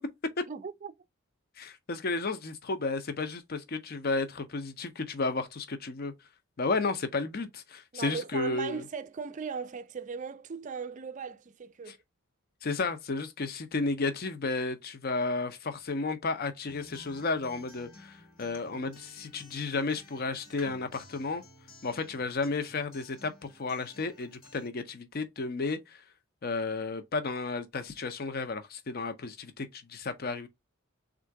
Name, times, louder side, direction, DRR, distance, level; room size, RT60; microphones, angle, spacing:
voice 1, 0.5-0.9 7.9-12.0, right 5 dB, 35° right, 0.4 m, -38 dB
voice 2, 1.6-6.1 6.6-8.8 11.9-12.0 12.6-21.4 21.8-26.0 26.4-30.5, left 3 dB, 45° left, 0.6 m, -33 dB
Acoustic guitar, 16.7-24.7, left 1 dB, 70° left, 1.3 m, -54 dB
3.6 x 2.5 x 4.5 m
head